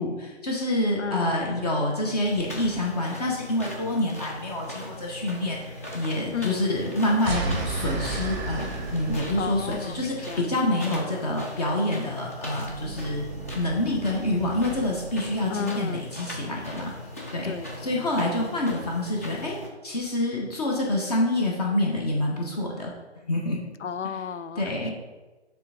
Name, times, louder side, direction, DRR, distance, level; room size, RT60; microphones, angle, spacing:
voice 1, 0.0-8.7 8.9-13.3 13.5-16.9 17.3-17.5 17.8-19.6 19.8-23.6 24.6-24.9, left 1 dB, 35° left, -1 dB, 1.1 m, -27 dB
voice 2, 1.0-1.5 6.3-6.6 9.4-10.6 15.5-16.1 17.4-18.1 23.8-24.7, left 7 dB, 85° left, 14 dB, 0.5 m, -33 dB
sound 1, 2.2-19.7, left 1 dB, 15° left, 0.4 m, -39 dB
sound 2, 7.2-9.8, right 3 dB, 15° right, 0.7 m, -32 dB
sound 3, 7.2-10.5 12.5-15.8, right 5 dB, 55° right, 0.6 m, -40 dB
6.7 x 3.5 x 4.9 m, 1.2 s
figure-of-eight pair, 140°, 34 cm